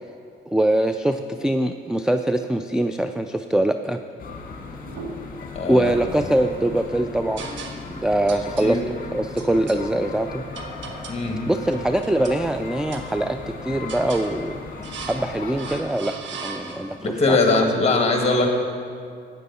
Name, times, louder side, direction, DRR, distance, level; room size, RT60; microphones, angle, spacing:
voice 1, 0.5-4.0 5.7-7.5 7.9-10.4 11.5-14.6 15.0-17.4, right 1 dB, 5° right, 7 dB, 0.4 m, -23 dB
sound 1, 4.2-15.8, left 4 dB, 45° left, 1.8 m, -37 dB
sound 2, 4.9-5.4 5.8-6.7 7.4-8.0 8.3-8.7 9.4-9.8 10.5-11.3 11.7-12.4 12.9-13.5 13.9-14.3 14.8-15.3 15.6-17.0, right 4 dB, 70° right, 1.2 m, -38 dB
voice 2, 5.6-5.9 8.6-8.8 11.1-11.4 17.0-18.5, left 3 dB, 30° left, 2 dB, 2.0 m, -21 dB
13.5 x 9.2 x 4.1 m, 2.3 s
cardioid pair, 90°, 20 cm